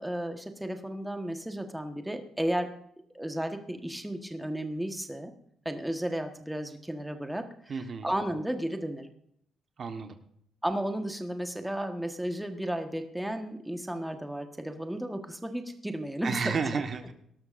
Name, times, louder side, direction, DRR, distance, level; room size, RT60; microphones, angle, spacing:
voice 1, 0.0-2.7 3.1-5.3 5.6-9.1 10.6-16.6, right 1 dB, 5° right, 6 dB, 1.3 m, -33 dB
voice 2, 7.7-8.1 9.8-10.2 16.2-17.1, right 5 dB, 50° right, 7 dB, 1.3 m, -31 dB
18.5 x 12.5 x 2.6 m, 0.70 s
cardioid pair, 90°, 0 cm